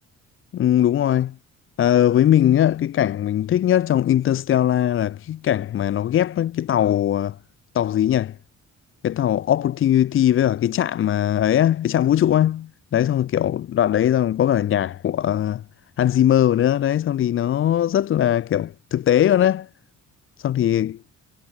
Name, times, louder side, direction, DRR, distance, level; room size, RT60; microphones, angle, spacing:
voice 1, 0.5-1.3 1.8-7.4 7.7-8.4 9.0-15.6 16.0-19.7 20.4-21.0, left 11 dB, 45° left, 0.5 m, -20 dB
cardioid pair, 90°, 30 cm